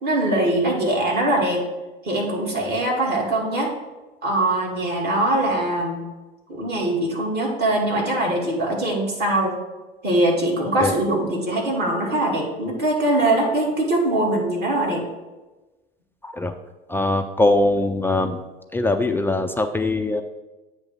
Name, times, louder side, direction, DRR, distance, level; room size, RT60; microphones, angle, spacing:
voice 1, 0.0-1.6 2.0-3.7 4.2-6.0 6.5-9.6 10.0-15.0, right 1 dB, 35° right, -2 dB, 2.4 m, -22 dB
voice 2, 16.9-18.4 18.7-20.2, left 2 dB, 10° left, 5 dB, 0.3 m, -21 dB
8.1 x 3.3 x 6.5 m, 1.1 s
figure-of-eight pair, 75°, 30 cm